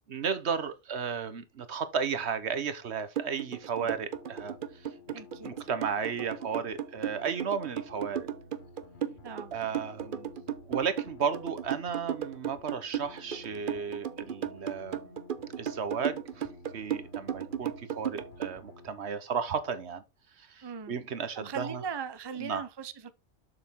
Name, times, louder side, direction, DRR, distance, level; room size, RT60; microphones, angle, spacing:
voice 1, 0.1-4.6 5.4-8.3 9.5-10.3 10.7-15.0 15.6-16.5 16.7-20.0 20.6-21.8 22.4-22.6, right 6 dB, 70° right, 1.3 m, -34 dB
sound 1, 3.2-18.6, right 9 dB, 55° right, 0.9 m, -35 dB
sound 2, 3.9-18.9, left 3 dB, 65° left, 1.6 m, -53 dB
voice 2, 5.1-5.7 9.2-9.5 20.6-20.9 21.4-23.1, right 6 dB, 25° right, 0.7 m, -39 dB
7.1 x 6.4 x 3.6 m
omnidirectional pair, 1.2 m